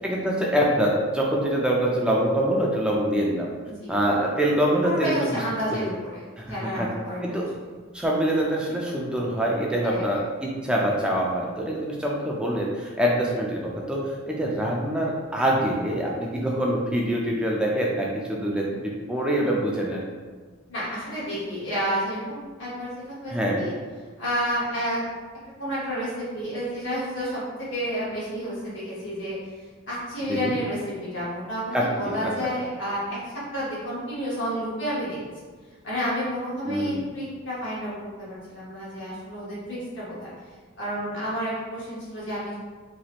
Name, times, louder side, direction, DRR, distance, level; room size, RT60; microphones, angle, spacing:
voice 1, 0.0-3.5 3.9-5.1 6.4-6.9 7.2-7.5 7.9-20.1 23.3-23.6 30.3-30.6 31.7-32.3 36.6-37.0, right 1 dB, 5° right, -3 dB, 0.3 m, -25 dB
voice 2, 4.8-7.2 9.8-10.0 20.7-23.7 24.2-25.0 25.6-29.4 29.9-35.4 35.8-37.9 38.2-40.3 40.8-42.5, equal, 55° left, -8 dB, 0.9 m, -30 dB
2.9 x 2.9 x 2.4 m, 1.5 s
head